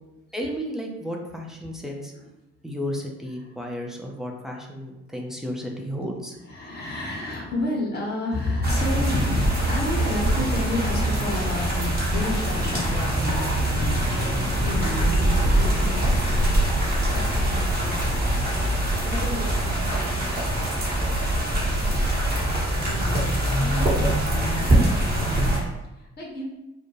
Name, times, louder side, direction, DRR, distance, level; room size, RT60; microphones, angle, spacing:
voice 1, 0.3-2.1 2.6-6.4, equal, ahead, 0 dB, 0.4 m, -33 dB
voice 2, 6.4-26.4, left 2 dB, 25° left, -2 dB, 0.7 m, -32 dB
sound 1, 8.6-25.6, right 1 dB, 25° right, 1.1 m, -23 dB
2.3 x 2.1 x 3.0 m, 0.96 s
figure-of-eight pair, 40°, 39 cm